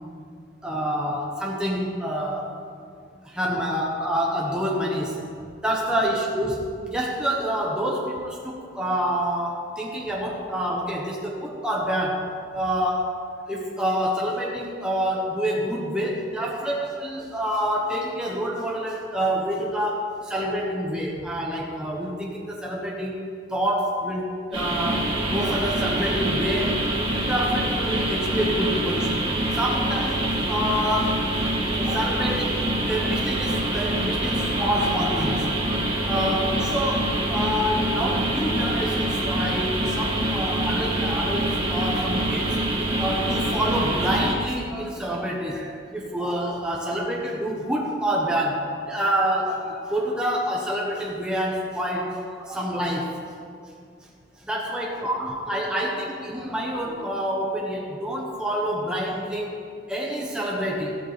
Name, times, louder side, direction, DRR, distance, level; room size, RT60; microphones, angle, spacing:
voice 1, 0.6-2.5 3.2-5.2 5.6-13.1 13.5-23.2 23.5-26.8 27.1-31.2 31.8-42.6 43.0-53.2 54.4-59.6 59.9-61.0, equal, 5° right, -3 dB, 1.1 m, -27 dB
sound 1, 24.5-44.3, right 1 dB, 30° right, 2.1 m, -25 dB
14.5 x 12.0 x 3.3 m, 2.3 s
head